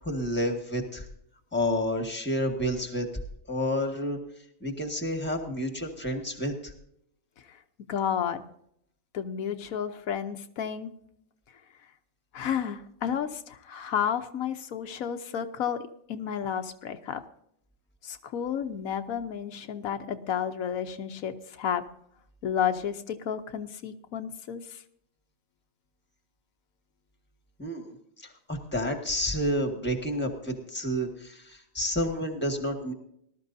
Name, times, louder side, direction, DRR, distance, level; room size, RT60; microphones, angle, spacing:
voice 1, 0.0-1.1 1.5-3.1 3.5-4.2 4.6-6.7 27.6-27.9 28.2-32.9, equal, 10° left, 5 dB, 1.7 m, -30 dB
voice 2, 7.5-8.4 9.1-10.9 12.3-17.2 18.0-21.8 22.4-24.8, left 8 dB, 90° left, 7 dB, 1.3 m, -32 dB
19.0 x 12.5 x 2.7 m, 0.71 s
omnidirectional pair, 1.4 m